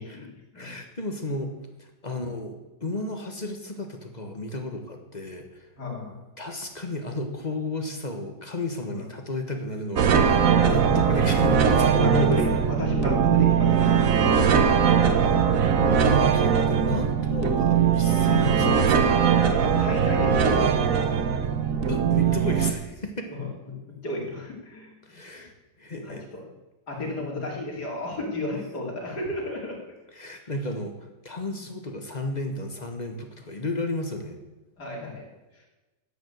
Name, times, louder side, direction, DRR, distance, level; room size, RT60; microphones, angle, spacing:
voice 1, 0.0-0.7 5.8-6.2 8.9-9.0 11.8-14.0 19.5-20.9 23.3-24.9 25.3-25.5 25.9-26.5 26.9-29.9 34.8-35.2, left 2 dB, 60° left, -2 dB, 3.6 m, -33 dB
voice 2, 0.5-1.5 1.8-5.5 6.4-12.4 14.5-14.9 16.0-19.1 21.9-23.3 25.0-25.5 25.8-26.3 30.1-34.4, left 1 dB, 25° left, 4 dB, 1.3 m, -32 dB
sound 1, 10.0-22.7, right 7 dB, 55° right, 1.2 m, -21 dB
11.0 x 8.1 x 8.0 m, 1.1 s
omnidirectional pair, 2.0 m